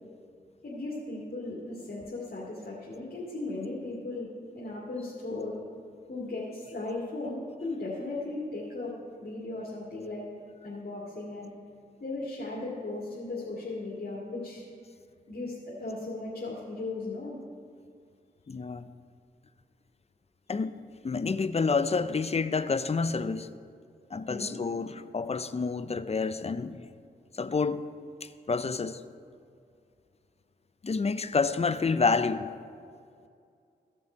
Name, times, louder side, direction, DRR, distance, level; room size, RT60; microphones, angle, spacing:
voice 1, 0.6-4.3 4.5-5.6 6.1-10.2 10.6-11.5 12.0-14.6 15.3-17.4 24.3-24.6, left 2 dB, 60° left, 2.2 m, -37 dB
voice 2, 18.5-18.9 20.5-20.8 21.0-23.5 24.1-26.9 27.4-27.9 28.2-29.0 30.8-32.5, left 4 dB, 35° left, 0.5 m, -28 dB
15.0 x 6.1 x 4.5 m
cardioid pair, 60°, 18 cm